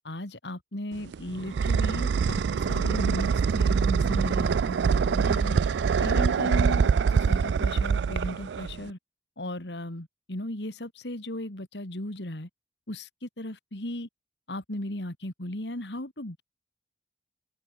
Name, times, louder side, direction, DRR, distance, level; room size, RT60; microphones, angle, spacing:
voice 1, 0.0-9.0 9.4-12.5 12.9-14.1 14.5-16.4, left 1 dB, 75° left, 3.0 m, -36 dB
sound 1, 0.9-8.9, right 6 dB, 75° right, 0.4 m, -24 dB
open air
head